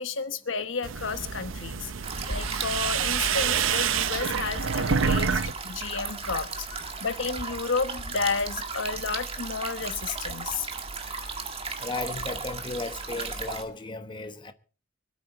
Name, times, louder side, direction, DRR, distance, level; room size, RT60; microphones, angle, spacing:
voice 1, 0.0-1.9 2.3-6.7 7.0-10.7, left 4 dB, 70° left, 1.1 m, -31 dB
sound 1, 0.8-5.5 5.8-6.4, right 7 dB, 85° right, 0.7 m, -27 dB
sound 2, 2.0-13.6, right 4 dB, 30° right, 1.8 m, -35 dB
sound 3, 5.5-11.1, equal, 5° left, 4.9 m, -57 dB
voice 2, 11.8-14.5, left 3 dB, 25° left, 1.2 m, -35 dB
25.5 x 8.7 x 4.2 m
head